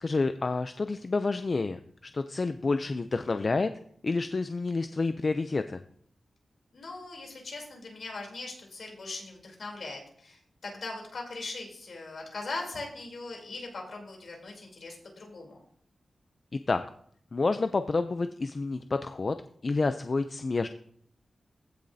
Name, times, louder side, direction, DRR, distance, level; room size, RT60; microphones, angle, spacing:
voice 1, 0.0-3.7 4.0-5.8 16.7-16.8 17.3-19.3 19.6-20.7, left 3 dB, 40° left, 9 dB, 0.4 m, -29 dB
voice 2, 6.7-15.6, left 3 dB, 60° left, 0 dB, 3.2 m, -40 dB
15.5 x 7.1 x 2.7 m, 0.62 s
wide cardioid pair, 160°, 0 cm